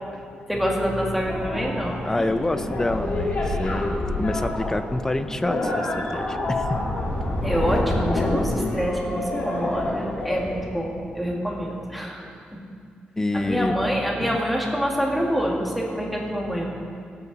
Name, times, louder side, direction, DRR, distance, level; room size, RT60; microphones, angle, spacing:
voice 1, 0.5-2.2 7.4-12.3 13.3-16.7, equal, ahead, -2 dB, 1.8 m, -26 dB
sound 1, 1.0-10.5, left 1 dB, 45° left, 2.5 m, -27 dB
voice 2, 2.0-6.8 8.5-8.8 13.2-13.8 14.2-14.4, left 2 dB, 15° left, 10 dB, 0.6 m, -27 dB
17.0 x 8.5 x 4.0 m, 2.3 s
cardioid pair, 115°, 3 cm